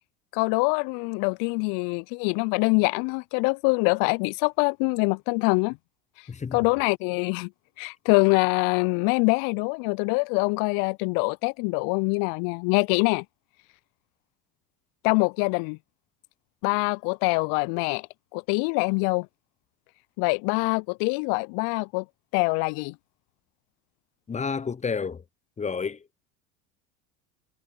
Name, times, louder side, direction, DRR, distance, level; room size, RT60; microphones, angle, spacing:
voice 1, 0.3-5.8 6.5-7.5 7.8-13.2 15.0-15.8 16.6-18.1 18.3-19.3 20.2-22.0 22.3-22.9, left 34 dB, 50° left, 0.5 m, -24 dB
voice 2, 6.3-6.7 24.3-25.2 25.6-26.0, left 5 dB, 15° left, 0.8 m, -30 dB
hypercardioid pair, 75°, 44 cm